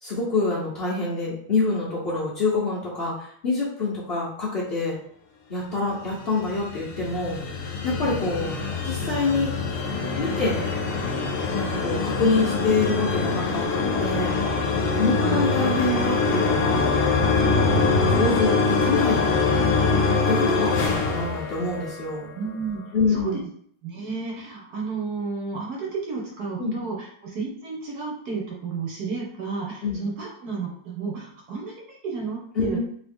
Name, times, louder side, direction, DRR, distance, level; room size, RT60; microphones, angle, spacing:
voice 1, 0.0-5.0 5.5-7.4 7.8-8.5 8.8-9.5 10.2-10.6 11.5-14.4 14.9-16.8 17.4-17.7 18.1-19.4 20.3-22.3 22.9-23.4 26.6-26.8 29.8-30.0 32.6-32.8, left 3 dB, 85° left, -7 dB, 0.5 m, -26 dB
sound 1, 6.1-22.2, left 4 dB, 70° left, 1.0 m, -24 dB
voice 2, 14.8-15.4 17.4-18.1 22.3-23.4 23.8-32.8, right 4 dB, 65° right, -2 dB, 1.0 m, -32 dB
3.0 x 2.8 x 3.4 m, 0.62 s
omnidirectional pair, 2.3 m